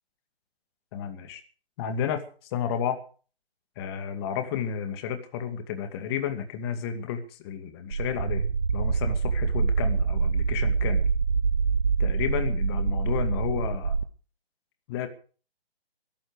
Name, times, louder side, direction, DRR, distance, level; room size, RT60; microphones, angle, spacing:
voice 1, 0.9-1.4 1.8-3.0 3.8-8.5 8.7-11.1 12.0-14.0 14.9-15.1, left 8 dB, 25° left, 8 dB, 2.3 m, -32 dB
sound 1, 7.9-14.0, right 5 dB, 65° right, 1.3 m, -25 dB
21.5 x 12.0 x 4.9 m, 0.41 s
figure-of-eight pair, 140°, 31 cm